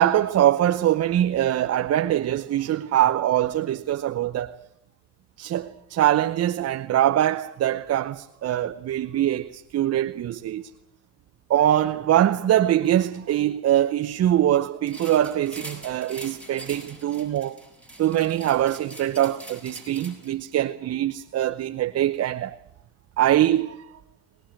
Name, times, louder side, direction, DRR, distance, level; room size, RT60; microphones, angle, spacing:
voice 1, 0.0-4.5 5.4-10.7 11.5-17.6 18.0-22.6 23.2-23.9, right 12 dB, 35° right, 0.9 m, -23 dB
sound 1, 14.9-20.5, right 1 dB, 5° left, 7.5 m, -43 dB
23.5 x 20.0 x 9.1 m
supercardioid pair, 100°, 45 cm